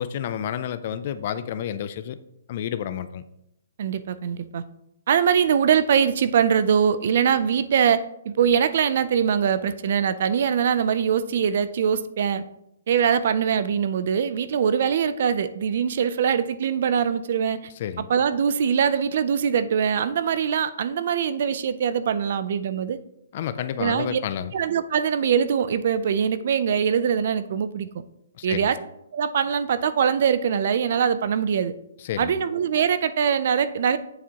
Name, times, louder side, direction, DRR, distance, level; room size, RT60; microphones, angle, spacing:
voice 1, 0.0-2.2 2.5-3.2 17.8-18.1 23.3-24.5 28.4-28.7 32.0-32.3, left 9 dB, 35° left, 13 dB, 0.4 m, -30 dB
voice 2, 3.8-4.6 5.1-12.4 12.9-17.6 18.1-23.0 23.8-24.2 24.5-27.9 28.4-28.8 29.1-31.7 32.2-34.0, right 7 dB, 45° right, 14 dB, 0.4 m, -22 dB
8.4 x 7.2 x 2.9 m, 0.82 s
hypercardioid pair, 175°, 0 cm